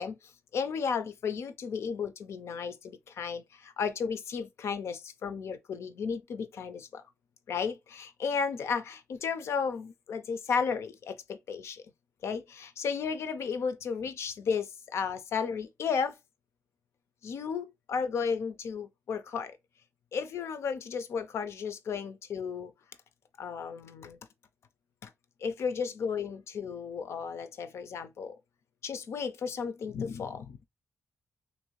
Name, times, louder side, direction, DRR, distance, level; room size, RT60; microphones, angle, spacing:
voice 1, 0.0-7.0 7.5-11.8 12.2-16.2 17.2-19.6 20.1-22.7 23.4-24.2 25.0-25.1 25.4-28.4 28.8-30.6, left 6 dB, 70° left, 0.5 m, -34 dB
3.0 x 2.6 x 3.0 m
cardioid pair, 80°, 5 cm